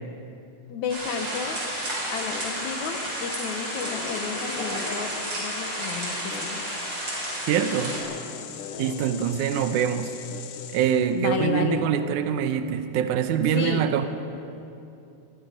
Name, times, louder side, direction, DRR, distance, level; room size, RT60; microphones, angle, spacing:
voice 1, 0.7-1.6 2.1-5.1 5.4-6.7 11.1-11.9 13.5-13.9, left 6 dB, 70° left, 6 dB, 2.5 m, -31 dB
sound 1, 0.9-8.0, right 1 dB, 40° right, 5.8 m, -32 dB
sound 2, 1.7-11.2, left 8 dB, 85° left, 2.7 m, -40 dB
voice 2, 7.5-8.0 8.8-10.1 10.7-14.1, right 8 dB, 80° right, 8 dB, 2.3 m, -24 dB
23.5 x 23.0 x 5.2 m, 2.7 s
omnidirectional pair, 3.6 m